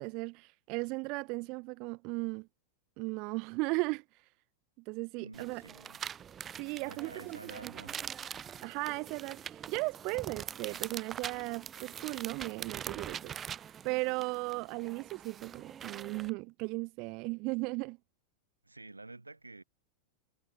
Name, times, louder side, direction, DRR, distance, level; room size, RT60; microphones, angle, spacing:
voice 1, 0.0-2.5 3.0-4.3 4.9-5.6 6.6-7.7 8.6-18.0, right 28 dB, 45° right, 0.4 m, -36 dB
voice 2, 5.2-6.0 6.8-8.0 18.6-19.6, right 2 dB, 80° right, 2.9 m, -50 dB
sound 1, 5.3-16.3, right 8 dB, 25° right, 2.8 m, -43 dB
figure-of-eight pair, 90°, 0 cm